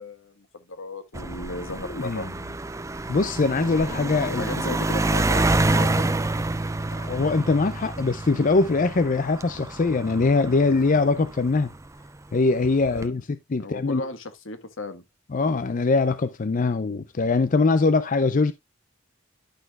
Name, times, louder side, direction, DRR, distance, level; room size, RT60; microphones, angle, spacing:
voice 1, 0.0-2.3 3.9-4.1 4.4-6.2 12.9-13.2 13.6-15.0, left 2 dB, 75° left, 1.5 m, -36 dB
sound 1, 1.1-11.9 12.6-13.1, right 2 dB, 15° right, 0.5 m, -28 dB
voice 2, 1.9-2.3 3.1-4.6 7.0-11.7 12.3-14.0 15.3-18.5, left 3 dB, 40° left, 0.5 m, -22 dB
11.5 x 6.2 x 2.3 m
head